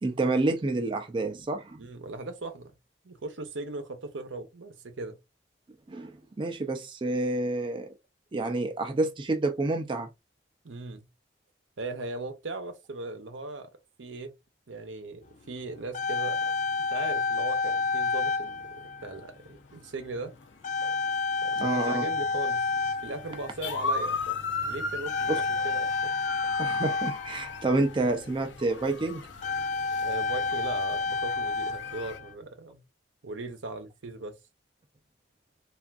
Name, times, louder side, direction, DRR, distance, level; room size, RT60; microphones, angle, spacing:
voice 1, 0.0-1.8 5.9-7.9 8.3-10.1 20.8-20.9 21.6-22.1 25.3-25.4 26.6-29.2, right 2 dB, 25° right, 0.4 m, -28 dB
voice 2, 1.8-2.7 3.0-5.2 10.6-11.1 11.8-13.7 14.0-14.3 14.7-16.4 16.9-18.7 19.0-20.3 21.4-22.6 23.0-24.4 24.6-26.1 30.0-32.8 33.2-34.4, right 2 dB, 85° right, 0.7 m, -38 dB
sound 1, 15.4-15.5 15.7-19.3 20.0-20.2 20.6-23.9 25.0-28.1 28.8-28.9 29.2-32.3, left 4 dB, 40° left, 0.3 m, -30 dB
sound 2, 16.8-32.2, left 4 dB, 80° left, 0.6 m, -38 dB
3.3 x 2.4 x 2.4 m
head